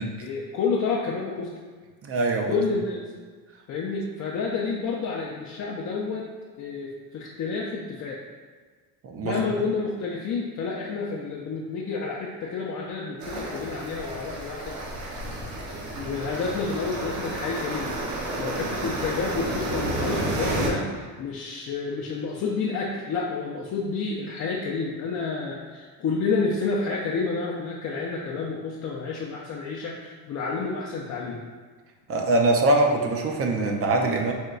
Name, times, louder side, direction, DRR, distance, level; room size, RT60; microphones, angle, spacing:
voice 1, 0.2-1.5 2.5-3.0 3.7-6.3 6.6-8.2 9.2-14.8 16.0-17.9 18.4-31.4, left 4 dB, 45° left, -3 dB, 0.5 m, -29 dB
voice 2, 2.0-2.6 9.0-9.4 32.1-34.3, right 2 dB, 35° right, 3 dB, 0.6 m, -23 dB
sound 1, 13.2-20.7, right 2 dB, 55° right, 1.0 m, -31 dB
4.3 x 2.2 x 3.7 m, 1.5 s
cardioid pair, 105°, 41 cm